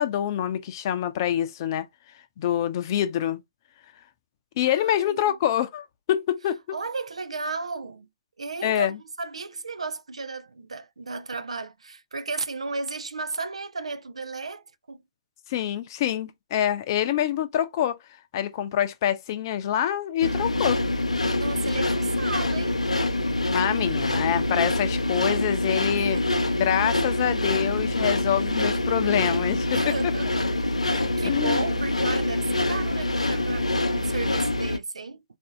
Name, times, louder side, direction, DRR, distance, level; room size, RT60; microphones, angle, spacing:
voice 1, 0.0-1.9 2.4-3.4 4.6-6.6 8.6-9.0 15.5-18.0 18.3-20.8 23.5-26.2 26.5-29.9 31.2-31.7, left 10 dB, 40° left, 0.6 m, -26 dB
voice 2, 4.7-5.3 6.7-8.1 8.4-15.0 21.4-22.9 25.9-26.6 29.7-30.5 30.9-35.2, right 4 dB, 70° right, 0.5 m, -34 dB
sound 1, 20.2-34.8, left 2 dB, 80° left, 0.6 m, -25 dB
4.1 x 2.7 x 3.7 m
figure-of-eight pair, 125°, 3 cm